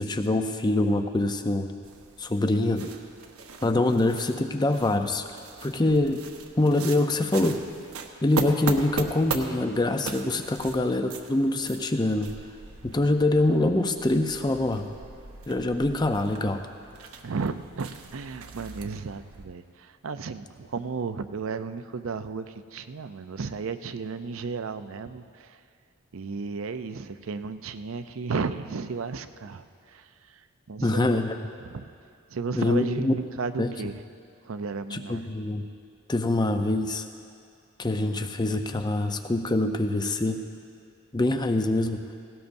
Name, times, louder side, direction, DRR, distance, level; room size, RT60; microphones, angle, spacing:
voice 1, 0.0-1.7 2.2-2.9 3.6-5.2 5.6-6.2 6.6-7.6 8.2-12.3 12.8-14.9 15.5-16.6 30.8-31.4 32.6-33.1 33.6-33.7 34.9-35.7 36.1-37.1 37.8-40.4 41.1-42.0, left 2 dB, 20° left, 7 dB, 0.5 m, -24 dB
sound 1, 1.8-19.5, right 4 dB, 90° right, 0.9 m, -39 dB
voice 2, 17.2-25.6 26.1-31.2 31.6-31.9 32.3-34.0 34.4-35.2, right 4 dB, 70° right, 10 dB, 0.5 m, -34 dB
18.0 x 17.0 x 2.6 m, 2.4 s
head